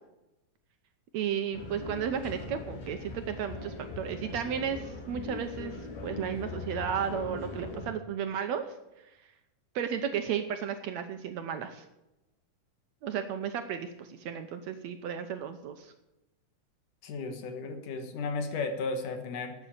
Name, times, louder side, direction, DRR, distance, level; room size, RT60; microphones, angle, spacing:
voice 1, 1.1-8.6 9.7-11.8 13.0-15.9, right 8 dB, 70° right, 7 dB, 1.8 m, -34 dB
sound 1, 1.5-7.9, left 3 dB, 60° left, 3.0 m, -40 dB
voice 2, 17.0-19.6, left 3 dB, 75° left, 6 dB, 3.0 m, -34 dB
12.0 x 8.1 x 7.4 m, 0.94 s
omnidirectional pair, 3.8 m